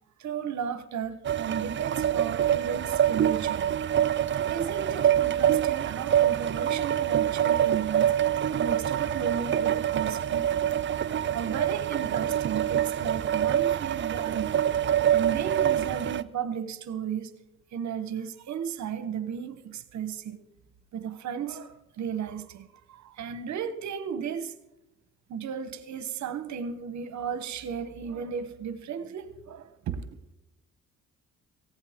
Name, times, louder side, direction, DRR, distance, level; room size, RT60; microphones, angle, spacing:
voice 1, 0.2-3.7 4.5-8.1 8.6-10.5 11.3-14.6 15.1-17.3 17.7-20.4 20.9-24.6 25.3-30.2, right 7 dB, 65° right, 1.0 m, -34 dB
sound 1, 1.2-16.2, right 10 dB, 40° right, 0.5 m, -25 dB
17.5 x 15.5 x 3.6 m
cardioid pair, 90°, 30 cm